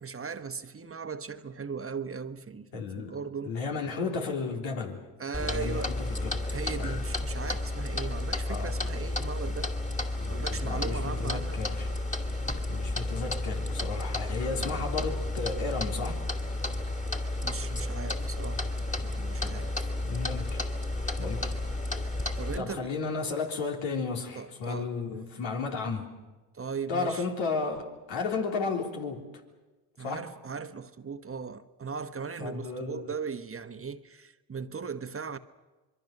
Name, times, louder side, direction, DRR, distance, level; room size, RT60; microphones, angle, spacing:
voice 1, 0.0-3.6 5.2-6.0 6.5-9.7 10.3-11.6 14.6-14.9 17.4-18.6 19.0-19.7 21.4-21.6 22.4-23.0 24.3-25.2 26.5-27.3 30.0-35.4, right 5 dB, 30° right, 1.2 m, -38 dB
voice 2, 2.7-3.2 3.4-5.0 5.4-6.4 6.8-7.0 8.5-8.8 10.2-11.9 12.7-16.2 20.0-20.6 21.2-21.5 22.6-26.1 26.9-29.2 30.0-30.2 32.4-33.1, left 4 dB, 75° left, 3.6 m, -33 dB
Clock, 5.3-22.6, left 2 dB, 15° left, 2.6 m, -32 dB
26.5 x 22.0 x 6.7 m
supercardioid pair, 65°, 46 cm